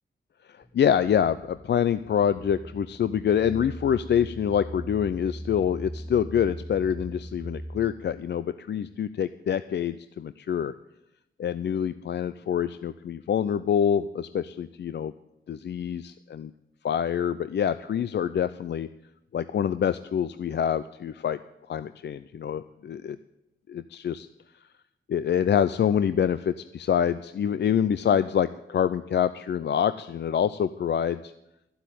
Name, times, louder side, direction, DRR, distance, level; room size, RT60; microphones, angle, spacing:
voice 1, 0.5-10.7 11.4-15.1 15.5-16.5 16.8-18.9 19.3-21.4 21.7-23.2 23.7-24.3 25.1-31.3, left 8 dB, 55° left, 13 dB, 0.5 m, -26 dB
sound 1, 0.6-8.4, right 1 dB, 5° right, 0.6 m, -41 dB
12.0 x 8.1 x 9.2 m, 0.90 s
cardioid pair, 80°, 21 cm